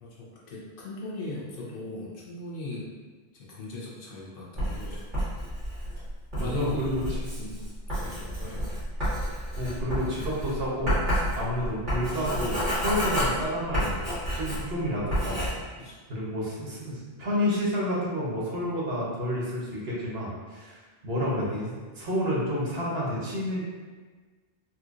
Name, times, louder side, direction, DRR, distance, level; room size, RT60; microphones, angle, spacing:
voice 1, 0.0-2.9 3.3-5.0 6.4-7.0 7.4-7.6 7.9-8.6 15.8-16.0, left 2 dB, 60° left, -5 dB, 0.9 m, -38 dB
Writing, 4.6-14.8 15.1-15.5, equal, 50° right, 1.8 m, -30 dB
voice 2, 6.4-7.2 9.6-14.0 14.3-15.4 16.1-23.6, equal, 75° right, -6 dB, 1.2 m, -30 dB
4.3 x 2.5 x 2.4 m, 1.4 s
omnidirectional pair, 1.1 m